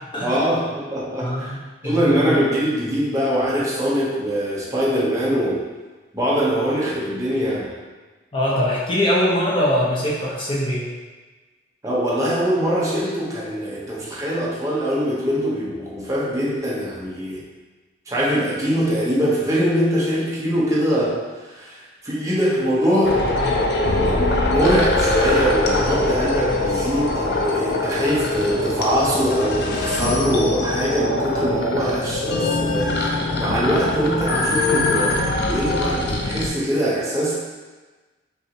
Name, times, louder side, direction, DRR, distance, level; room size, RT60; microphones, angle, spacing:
voice 1, 0.2-1.5 1.8-5.6 6.1-7.7 11.8-17.4 18.1-21.8 22.0-23.2 23.9-32.9 33.4-37.3, equal, 15° right, -6 dB, 0.8 m, -22 dB
voice 2, 1.2-1.6 1.8-2.1 8.3-10.9, left 1 dB, 30° left, -6 dB, 0.9 m, -22 dB
sound 1, 23.0-36.5, left 2 dB, 60° left, 0.5 m, -22 dB
5.5 x 2.7 x 2.8 m, 1.3 s
head